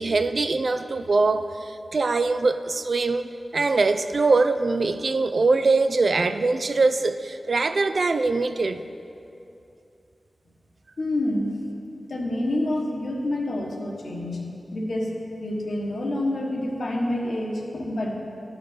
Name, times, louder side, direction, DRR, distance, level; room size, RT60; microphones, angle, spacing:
voice 1, 0.0-8.8, right 3 dB, 60° right, 10 dB, 0.3 m, -22 dB
voice 2, 11.0-11.6 12.1-14.4 14.7-18.2, left 1 dB, 75° left, -1 dB, 1.2 m, -27 dB
11.5 x 5.1 x 4.3 m, 2.7 s
wide cardioid pair, 90°, 0 cm